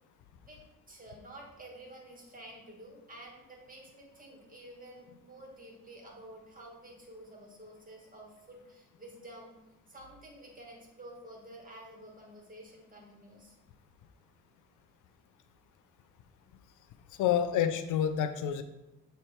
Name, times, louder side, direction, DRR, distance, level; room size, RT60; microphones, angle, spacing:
voice 1, 0.9-9.5 9.9-13.6, right 1 dB, 30° right, -1 dB, 2.0 m, -50 dB
voice 2, 17.2-18.6, left 9 dB, 90° left, 10 dB, 0.6 m, -28 dB
7.5 x 3.4 x 4.4 m, 0.91 s
cardioid pair, 90°, 30 cm